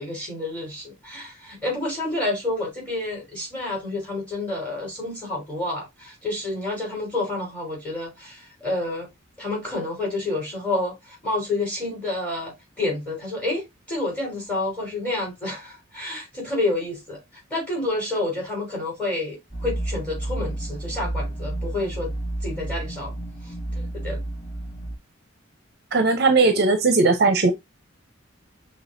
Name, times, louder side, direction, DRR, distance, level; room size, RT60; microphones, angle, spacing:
voice 1, 0.0-9.1 9.4-17.2 17.5-22.1 22.4-23.1 23.4-24.2, left 2 dB, 5° left, 3.5 m, -29 dB
sound 1, 19.5-25.0, right 1 dB, 30° left, 2.9 m, -31 dB
voice 2, 25.9-27.5, right 3 dB, 50° right, 0.7 m, -18 dB
6.0 x 3.2 x 2.6 m
head